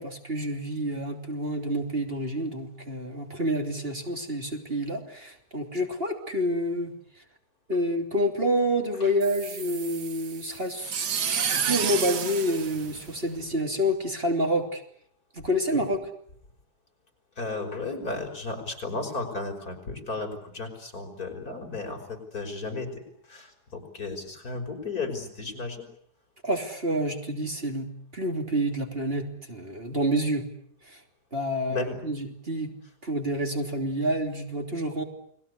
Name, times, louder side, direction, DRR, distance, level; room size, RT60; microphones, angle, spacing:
voice 1, 0.0-6.9 7.7-11.0 11.7-14.8 15.3-16.0 26.4-27.9 28.1-30.4 30.8-31.0 31.3-32.7 33.0-35.0, equal, 35° right, 3 dB, 3.4 m, -28 dB
sound 1, 9.2-13.6, right 7 dB, 75° right, 1.9 m, -31 dB
voice 2, 17.4-25.9 31.7-32.0 32.5-32.7, left 3 dB, 60° left, 4 dB, 6.2 m, -34 dB
30.0 x 21.5 x 8.4 m, 0.68 s
omnidirectional pair, 1.8 m